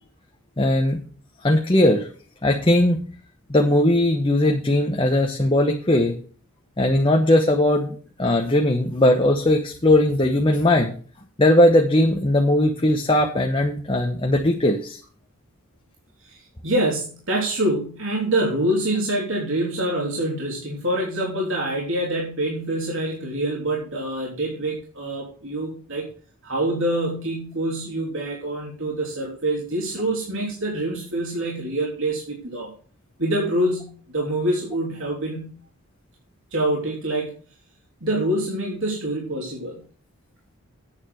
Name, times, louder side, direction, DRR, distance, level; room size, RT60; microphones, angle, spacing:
voice 1, 0.6-1.0 1.4-2.1 2.4-3.0 3.5-6.2 6.8-7.9 8.2-10.9 11.4-15.0, left 1 dB, 25° left, 3 dB, 1.0 m, -19 dB
voice 2, 16.2-26.1 26.4-32.7 33.2-35.6 36.5-37.3 38.0-39.8, right 1 dB, 60° right, -2 dB, 3.2 m, -26 dB
9.0 x 7.2 x 6.2 m, 0.42 s
head